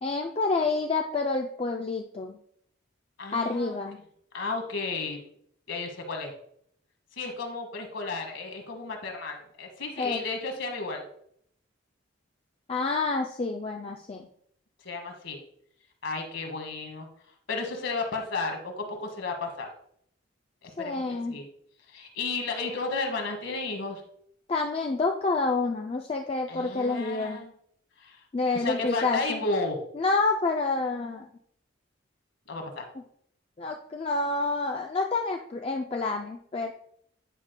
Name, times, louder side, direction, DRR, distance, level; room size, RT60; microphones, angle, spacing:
voice 1, 0.0-2.4 3.3-4.0 10.0-10.2 12.7-14.3 20.8-21.4 24.5-27.4 28.3-29.4 29.9-31.3 33.6-36.7, left 3 dB, 30° left, 2 dB, 0.3 m, -28 dB
voice 2, 3.2-3.8 4.3-5.2 5.7-6.3 7.1-11.0 14.8-15.4 16.0-17.1 17.5-19.7 20.6-21.5 21.9-24.0 26.5-27.5 28.0-28.2 28.5-29.8 32.5-32.8, left 3 dB, 70° left, 3 dB, 1.4 m, -33 dB
9.8 x 5.1 x 2.2 m, 0.67 s
head